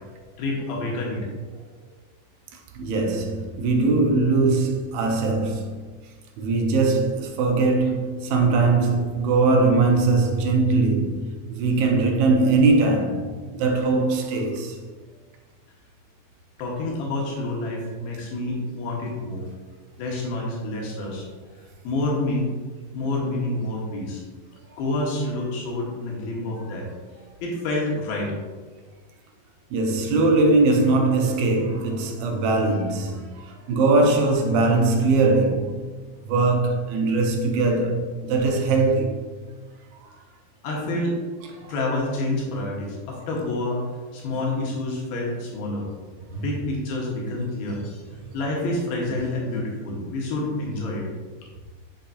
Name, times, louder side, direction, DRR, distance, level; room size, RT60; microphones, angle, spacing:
voice 1, 0.4-1.3 16.6-19.5 20.0-21.3 21.8-22.5 22.9-24.2 24.8-26.9 27.4-28.3 40.6-41.2 41.7-43.8 44.1-45.9 46.3-48.0 48.3-51.1, left 2 dB, 85° left, 3.1 m, -28 dB
voice 2, 2.5-5.7 6.4-11.2 11.5-14.8 29.7-35.7 36.3-39.1 40.0-40.1 41.6-41.7 46.3-46.4, right 3 dB, 80° right, 2.6 m, -21 dB
8.8 x 6.5 x 2.7 m
omnidirectional pair, 4.2 m